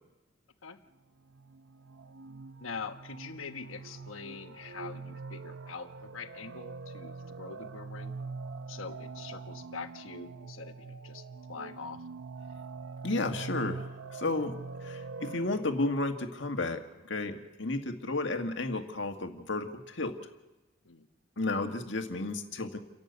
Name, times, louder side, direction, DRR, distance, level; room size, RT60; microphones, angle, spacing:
sound 1, 1.3-16.0, right 4 dB, 70° right, 0.8 m, -43 dB
voice 1, 2.6-8.2 8.7-12.0 20.8-21.1, left 5 dB, 85° left, 8 dB, 1.2 m, -44 dB
voice 2, 13.0-20.2 21.4-22.8, left 2 dB, 65° left, 5 dB, 1.7 m, -33 dB
29.0 x 12.0 x 8.2 m, 1.1 s
head